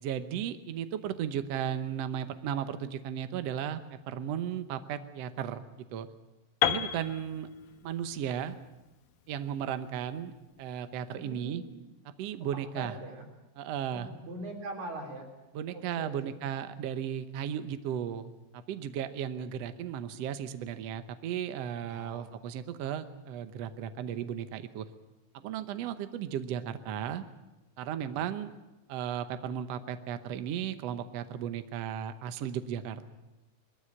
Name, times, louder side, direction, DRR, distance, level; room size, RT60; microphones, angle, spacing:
voice 1, 0.0-5.6 5.9-6.1 6.6-7.5 7.8-8.5 9.3-10.3 10.6-11.6 12.0-13.0 13.6-14.1 15.5-24.9 25.3-27.2 27.8-28.5 28.9-33.1, right 9 dB, 85° right, 10 dB, 1.4 m, -35 dB
Piano, 6.6-10.5, left 11 dB, 70° left, 2.2 m, -34 dB
voice 2, 11.1-11.6 12.8-13.3 13.9-15.3 15.7-16.1 21.9-22.3 28.0-28.1, right 2 dB, 55° right, 1 dB, 4.7 m, -41 dB
21.0 x 14.5 x 9.9 m, 1.0 s
omnidirectional pair, 4.2 m